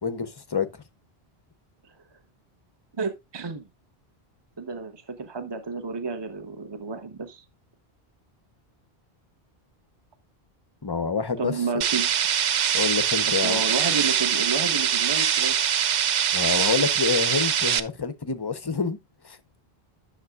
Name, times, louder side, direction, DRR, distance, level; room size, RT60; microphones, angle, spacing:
voice 1, 0.0-0.8 10.8-11.8 12.7-13.6 16.3-19.0 19.2-19.4, left 5 dB, 30° left, 0.5 m, -27 dB
voice 2, 3.0-3.7 4.6-7.4 11.4-12.1 13.2-15.5, right 4 dB, 25° right, 0.9 m, -31 dB
sound 1, 11.8-17.8, right 9 dB, 55° right, 0.5 m, -23 dB
10.5 x 6.5 x 2.3 m
omnidirectional pair, 1.1 m